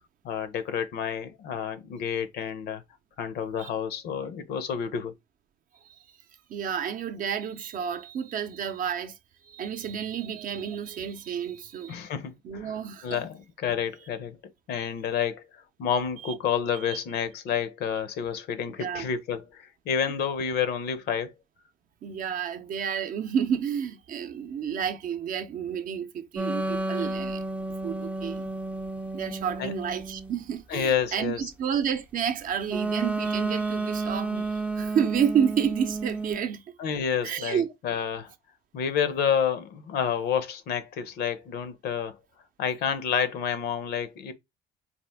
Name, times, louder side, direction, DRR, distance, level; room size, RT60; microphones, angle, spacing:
voice 1, 0.2-2.8 3.2-5.1 11.9-12.8 13.0-14.4 14.7-15.4 15.8-21.3 29.6-29.7 30.7-31.5 36.8-38.3 38.7-42.2 42.6-44.3, left 7 dB, 70° left, 0.7 m, -29 dB
voice 2, 6.5-9.1 9.5-12.0 12.4-13.2 16.2-16.3 16.8-17.0 18.8-19.1 22.0-27.4 27.8-28.5 29.1-36.6 37.2-37.7, right 8 dB, 55° right, 0.6 m, -30 dB
sound 1, 26.4-30.4 32.7-36.4, right 3 dB, 5° right, 0.4 m, -31 dB
4.2 x 2.4 x 3.4 m
cardioid pair, 110°, 17 cm